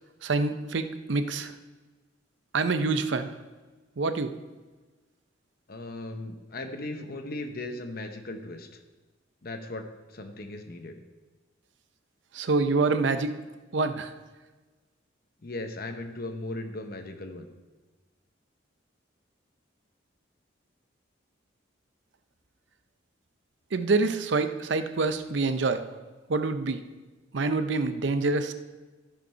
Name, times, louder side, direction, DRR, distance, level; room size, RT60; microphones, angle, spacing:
voice 1, 0.2-1.5 2.5-3.3 4.0-4.3 12.3-13.4 13.7-14.1 23.7-25.9 26.3-26.8 27.3-28.5, right 3 dB, 65° right, 10 dB, 0.6 m, -26 dB
voice 2, 5.7-8.7 9.4-11.0 15.4-17.5, left 2 dB, 50° left, 6 dB, 0.9 m, -37 dB
14.0 x 5.2 x 5.5 m, 1.3 s
head